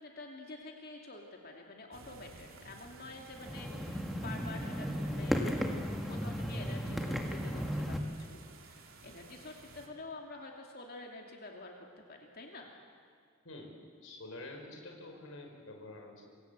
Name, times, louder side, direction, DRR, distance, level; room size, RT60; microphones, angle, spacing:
voice 1, 0.0-11.7 12.1-12.7, left 2 dB, 45° left, 1 dB, 2.7 m, -48 dB
sound 1, 1.9-9.9, right 3 dB, 80° right, 3.2 m, -55 dB
sound 2, 3.3-8.0, equal, ahead, 2.2 m, -35 dB
voice 2, 13.4-13.8 14.0-16.2, left 2 dB, 85° left, 2 dB, 5.2 m, -47 dB
27.5 x 25.0 x 8.2 m, 2.2 s
head